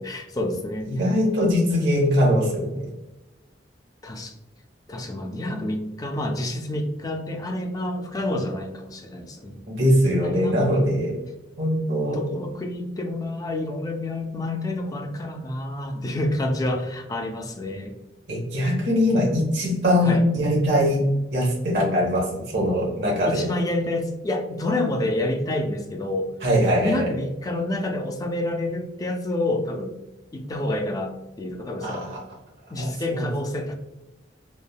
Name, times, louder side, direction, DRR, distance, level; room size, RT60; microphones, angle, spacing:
voice 1, 0.0-1.0 4.0-4.3 4.9-9.6 10.2-10.7 12.1-18.0 20.0-20.2 23.3-26.3 26.8-29.9 30.3-32.0 32.7-33.7, left 1 dB, 20° left, 3 dB, 0.3 m, -28 dB
voice 2, 0.9-2.9 9.7-11.2 11.6-12.2 18.3-21.0 21.3-23.4 26.4-27.1 31.8-32.2 32.8-33.3, equal, 65° right, -3 dB, 0.9 m, -22 dB
3.3 x 2.0 x 2.2 m, 1.0 s
head